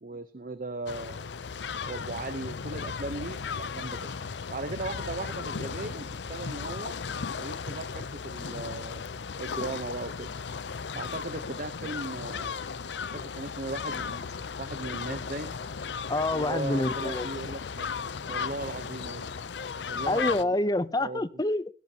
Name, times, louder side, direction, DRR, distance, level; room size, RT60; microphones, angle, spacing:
voice 1, 0.0-1.2 1.8-4.1 4.5-7.0 7.4-9.1 9.4-10.3 10.9-12.6 13.0-14.3 14.6-15.5 16.3-17.9 18.3-19.5 19.9-20.6 21.0-21.2, right 2 dB, 50° right, 0.9 m, -37 dB
sound 1, 0.9-20.4, left 5 dB, 85° left, 0.6 m, -36 dB
voice 2, 16.1-17.3 20.1-21.7, left 2 dB, 20° left, 0.7 m, -27 dB
17.0 x 16.5 x 2.9 m
head